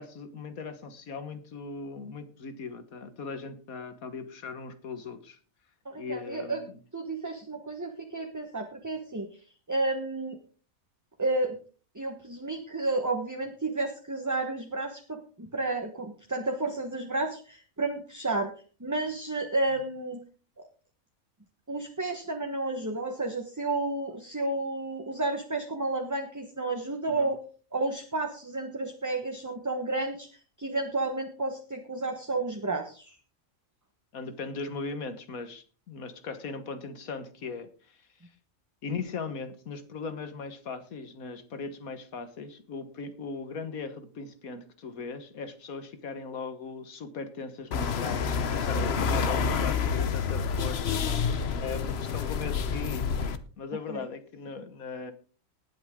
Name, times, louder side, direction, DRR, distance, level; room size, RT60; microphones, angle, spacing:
voice 1, 0.0-5.4 6.0-6.8 27.1-27.3 34.1-38.3 38.8-51.0 51.6-53.1 53.6-55.1, left 4 dB, 90° left, 10 dB, 1.8 m, -39 dB
voice 2, 5.8-6.6 6.9-9.3 9.7-10.4 11.2-11.6 11.9-18.5 18.8-20.2 21.7-27.4 27.7-30.3 30.6-33.1 53.9-54.0, right 2 dB, 15° right, 4 dB, 1.1 m, -31 dB
sound 1, 47.7-53.4, left 6 dB, 55° left, 1.0 m, -28 dB
19.0 x 8.0 x 3.7 m, 0.38 s
omnidirectional pair, 1.4 m